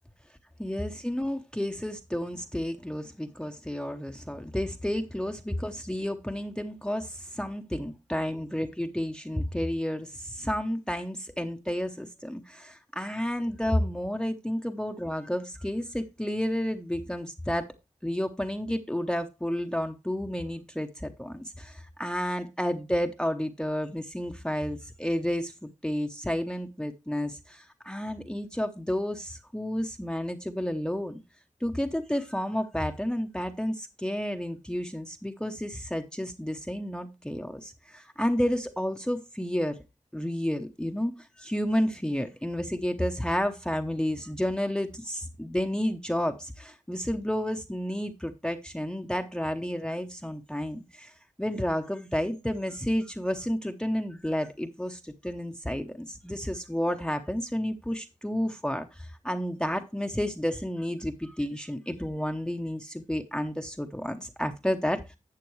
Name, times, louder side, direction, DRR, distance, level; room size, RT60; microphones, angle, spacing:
voice 1, 0.6-17.7 18.0-31.2 31.6-39.8 40.1-41.1 41.4-65.0, equal, 5° left, 0.8 m, -31 dB
11.5 x 7.6 x 3.1 m
cardioid pair, 55°, 14 cm